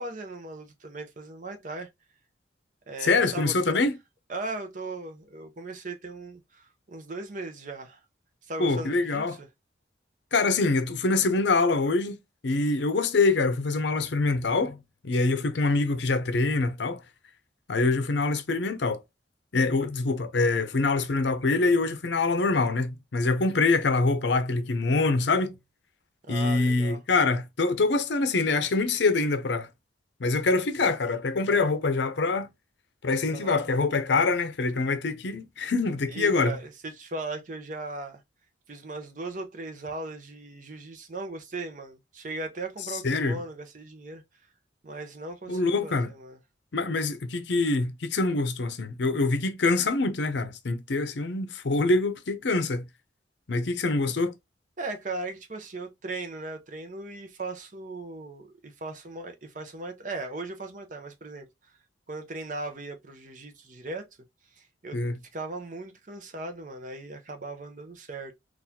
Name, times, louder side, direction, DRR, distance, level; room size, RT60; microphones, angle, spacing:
voice 1, 0.0-1.9 2.9-3.9 4.3-8.0 8.4-9.5 26.2-27.0 33.3-33.7 36.1-38.2 38.7-44.2 44.8-46.4 54.8-61.5 62.1-64.1 64.6-65.0 65.3-68.3, right 2 dB, 45° right, 0.7 m, -38 dB
voice 2, 3.0-4.0 8.6-9.4 10.3-12.2 12.4-14.8 15.0-17.0 17.7-19.0 19.5-25.5 26.3-29.7 30.2-32.5 33.0-36.6 43.0-43.4 45.5-46.1 46.7-52.8 53.5-54.3 64.9-65.2, left 3 dB, 70° left, 0.6 m, -25 dB
3.9 x 2.4 x 2.8 m
head